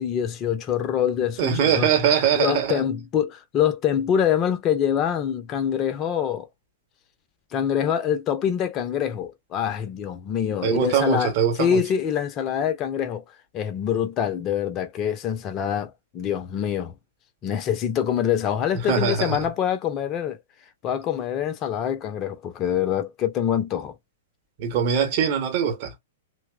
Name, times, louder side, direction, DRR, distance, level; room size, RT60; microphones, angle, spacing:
voice 1, 0.0-1.9 2.3-6.5 7.5-11.3 11.6-13.2 13.5-16.9 17.4-20.4 20.8-23.9, left 9 dB, 30° left, 0.5 m, -25 dB
voice 2, 1.4-2.8 10.6-11.8 18.9-19.5 24.6-25.9, right 8 dB, 40° right, 0.8 m, -22 dB
2.9 x 2.0 x 2.2 m
figure-of-eight pair, 105°, 0 cm